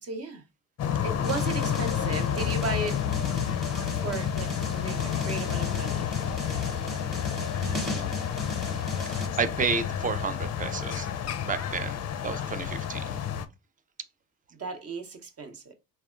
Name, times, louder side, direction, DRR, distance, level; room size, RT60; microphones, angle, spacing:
voice 1, 0.0-0.4 1.0-3.0 4.0-6.1 14.6-15.7, right 3 dB, 40° right, 0.8 m, -35 dB
sound 1, 0.8-13.4, left 8 dB, 45° left, 0.5 m, -30 dB
sound 2, 1.2-9.3, left 1 dB, ahead, 0.9 m, -38 dB
voice 2, 7.6-8.1 9.1-11.1 11.4-13.2, right 5 dB, 20° right, 0.4 m, -32 dB
3.4 x 2.2 x 2.4 m
supercardioid pair, 65°, 37 cm